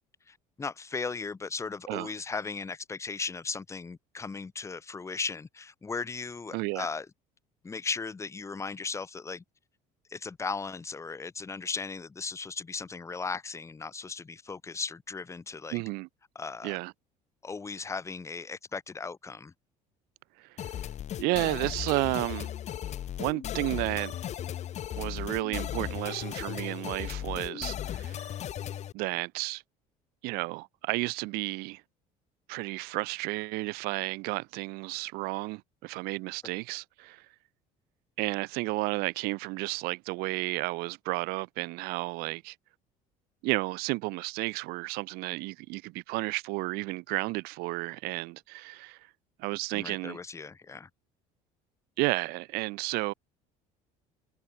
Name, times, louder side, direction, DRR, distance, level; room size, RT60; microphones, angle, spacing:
voice 1, 0.3-7.1 7.6-9.4 10.1-15.8 16.4-16.8 17.4-19.5 49.7-50.9, left 4 dB, 20° left, 2.2 m, -37 dB
voice 2, 6.5-6.9 15.7-16.1 16.6-16.9 20.4-20.7 21.2-22.5 23.2-24.2 25.0-28.3 28.9-29.6 30.2-31.8 32.5-37.2 38.2-42.6 43.4-49.0 49.4-50.2 52.0-53.1, right 25 dB, 80° right, 2.0 m, -32 dB
sound 1, 20.6-28.9, left 11 dB, 45° left, 4.6 m, -36 dB
cardioid pair, 130°, 16 cm